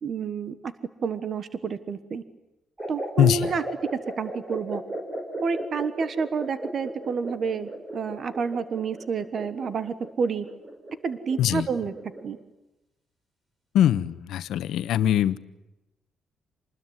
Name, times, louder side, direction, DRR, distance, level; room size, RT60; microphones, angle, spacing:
voice 1, 0.0-0.7 1.0-2.2 2.9-3.6 4.2-4.8 5.4-10.4 11.0-11.9 12.2-12.4, right 5 dB, 40° right, 13 dB, 1.3 m, -29 dB
sound 1, 2.8-12.4, right 1 dB, 20° right, 4.1 m, -37 dB
voice 2, 3.2-3.5 11.4-11.7 13.7-15.4, left 11 dB, 80° left, 13 dB, 1.2 m, -22 dB
27.0 x 20.5 x 9.7 m, 0.96 s
cardioid pair, 170°, 0 cm